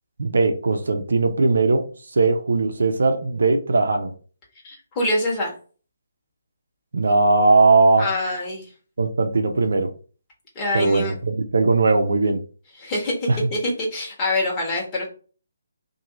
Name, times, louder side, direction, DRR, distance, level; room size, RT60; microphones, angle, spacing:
voice 1, 0.2-1.8 2.1-4.1 6.9-8.1 9.0-9.9 10.7-12.4 13.3-13.4, right 3 dB, 70° right, 0.6 m, -19 dB
voice 2, 4.6-5.5 8.0-8.6 10.5-11.2 12.8-15.1, left 1 dB, 20° left, 1.4 m, -25 dB
2.9 x 2.7 x 3.8 m
figure-of-eight pair, 150°, 0 cm